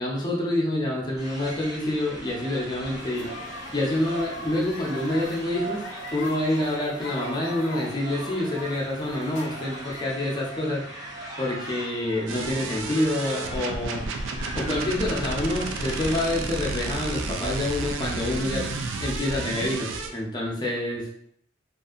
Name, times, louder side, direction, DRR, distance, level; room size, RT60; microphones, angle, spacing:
voice 1, 0.0-3.3 3.7-5.8 6.1-10.8 11.4-14.1 14.5-18.7 19.0-21.1, left 1 dB, 20° left, -2 dB, 0.5 m, -27 dB
sound 1, 1.2-16.3, right 1 dB, 20° right, 0.6 m, -39 dB
sound 2, 3.0-10.0, left 3 dB, 80° left, 0.5 m, -42 dB
sound 3, 12.3-20.1, right 3 dB, 85° right, 0.4 m, -31 dB
2.6 x 2.4 x 2.4 m, 0.70 s
head